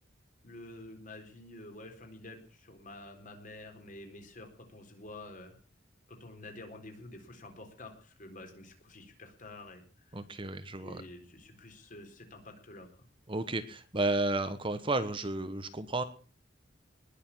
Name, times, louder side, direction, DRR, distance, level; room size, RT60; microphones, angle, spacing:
voice 1, 0.4-5.5 6.1-10.2 10.8-13.1, left 2 dB, 45° left, 4 dB, 4.1 m, -49 dB
voice 2, 10.1-11.0 13.3-16.0, right 2 dB, 30° right, 11 dB, 1.1 m, -32 dB
20.0 x 6.9 x 8.6 m, 0.42 s
head